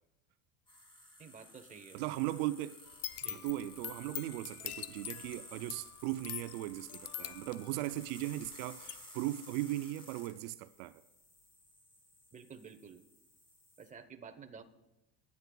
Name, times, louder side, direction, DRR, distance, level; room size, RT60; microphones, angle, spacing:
sound 1, 0.7-13.9, left 1 dB, 10° left, 1.9 m, -55 dB
voice 1, 1.2-2.0 3.2-3.4 12.3-13.0 13.8-14.6, right 6 dB, 15° right, 0.8 m, -51 dB
voice 2, 1.9-2.8 3.2-11.0, right 16 dB, 70° right, 0.6 m, -38 dB
sound 2, 2.9-8.5 8.9-9.0, left 12 dB, 35° left, 0.5 m, -44 dB
21.5 x 9.6 x 2.3 m
supercardioid pair, 125°, 45 cm